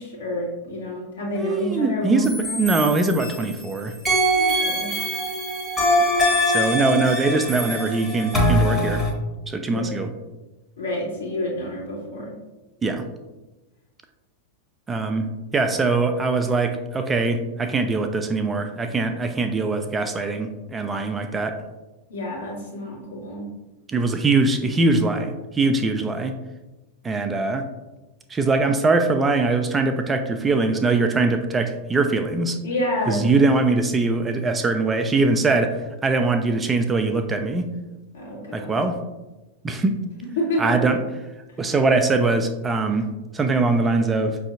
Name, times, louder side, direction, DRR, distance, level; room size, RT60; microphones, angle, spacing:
voice 1, 0.0-2.6 4.3-4.9 9.6-10.0 10.8-12.3 22.1-23.4 32.6-33.2 38.1-38.8 40.4-40.8, left 1 dB, 65° left, -4 dB, 1.3 m, -28 dB
voice 2, 1.4-3.9 6.5-9.0 9.5-10.1 12.8-13.0 14.9-21.6 23.9-26.4 27.0-27.7 28.3-32.6 33.1-37.7 38.5-39.0 39.6-40.0 40.6-41.0 41.6-44.4, right 3 dB, 15° right, 6 dB, 0.3 m, -22 dB
sound 1, 2.2-3.6 4.1-9.1, equal, 10° left, 0.9 m, -23 dB
5.6 x 2.6 x 2.4 m, 1.1 s
figure-of-eight pair, 90°, 0 cm